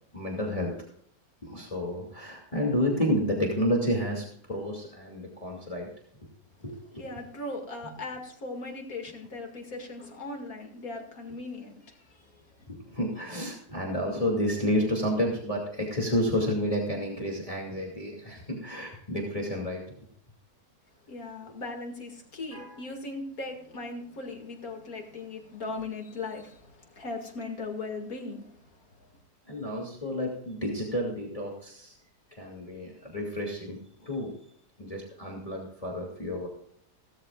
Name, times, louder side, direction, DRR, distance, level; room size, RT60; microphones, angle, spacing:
voice 1, 0.1-0.8 1.4-5.9 6.2-6.3 6.6-7.0 12.7-19.8 22.5-22.7 29.5-32.0 32.4-34.3 34.8-36.5, equal, 20° left, -1 dB, 2.5 m, -30 dB
voice 2, 7.0-12.6 21.1-29.1, left 3 dB, 60° left, 2 dB, 2.6 m, -39 dB
17.0 x 13.5 x 2.4 m, 0.65 s
omnidirectional pair, 1.7 m